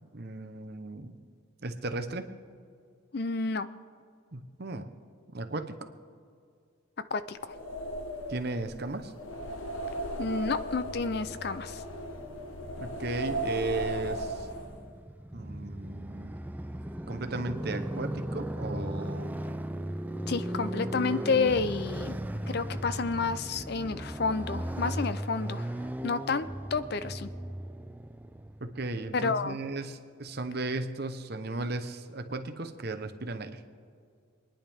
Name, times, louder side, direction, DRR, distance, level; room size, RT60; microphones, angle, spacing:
voice 1, 0.1-1.1 1.6-2.3 4.3-4.9 5.3-5.9 8.3-9.1 12.8-14.5 15.3-16.4 17.1-19.5 28.6-33.6, right 2 dB, 50° right, 7 dB, 0.9 m, -35 dB
voice 2, 3.1-3.7 7.1-7.5 10.2-11.8 20.3-22.2 22.5-25.7 26.0-27.3 29.1-29.6, left 4 dB, 50° left, 13 dB, 0.5 m, -30 dB
sound 1, 7.4-15.0, right 1 dB, 80° left, 1.0 m, -37 dB
Motorcycle, 10.7-28.9, right 1 dB, 10° right, 0.3 m, -37 dB
27.0 x 10.0 x 3.6 m, 2.3 s
head